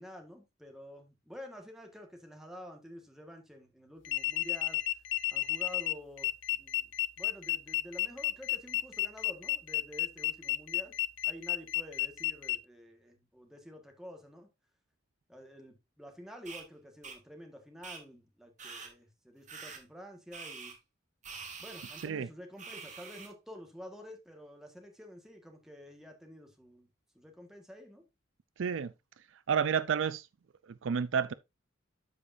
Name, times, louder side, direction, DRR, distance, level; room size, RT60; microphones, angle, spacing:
voice 1, 0.0-4.8 5.3-6.9 7.2-11.0 11.2-14.5 15.3-20.8 21.6-26.9 27.1-28.0, equal, ahead, 1.6 m, -49 dB
sound 1, 4.0-12.6, left 17 dB, 65° left, 0.6 m, -32 dB
sound 2, 16.5-16.6 17.0-17.2 17.8-18.0 18.6-18.9 19.5-19.8 20.3-20.7 21.2-22.1 22.6-23.3, right 5 dB, 40° right, 2.1 m, -45 dB
voice 2, 28.6-28.9 29.5-30.3 30.6-31.3, right 6 dB, 70° right, 0.4 m, -30 dB
12.5 x 5.0 x 2.6 m
head